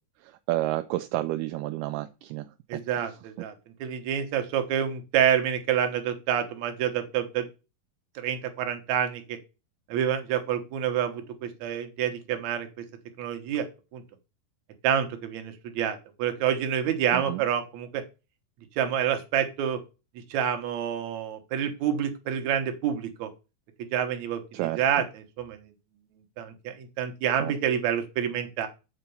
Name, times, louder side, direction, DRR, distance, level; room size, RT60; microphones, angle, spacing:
voice 1, 0.2-3.0 17.1-17.4 24.5-24.8 27.4-27.5, right 16 dB, 80° right, 9 dB, 1.9 m, -31 dB
voice 2, 2.7-3.5 3.8-7.4 8.2-9.4 9.9-12.7 13.2-13.7 13.9-14.0 14.8-18.0 18.8-19.8 20.3-23.3 23.9-25.7 26.4-28.7, right 9 dB, 65° right, 7 dB, 2.2 m, -28 dB
7.8 x 4.4 x 7.0 m, 0.29 s
omnidirectional pair, 4.1 m